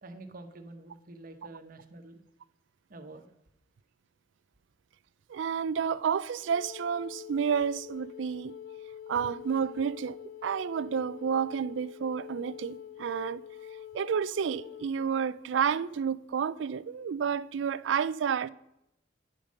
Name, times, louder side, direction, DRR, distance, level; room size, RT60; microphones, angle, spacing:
voice 1, 0.0-2.2 2.9-3.3, right 2 dB, 50° right, 1.0 m, -47 dB
voice 2, 5.3-8.5 9.1-10.2 10.4-13.4 13.9-18.5, right 7 dB, 75° right, 0.4 m, -30 dB
Wind instrument woodwind instrument, 6.5-14.9, left 9 dB, 80° left, 0.3 m, -45 dB
9.7 x 5.2 x 6.5 m
head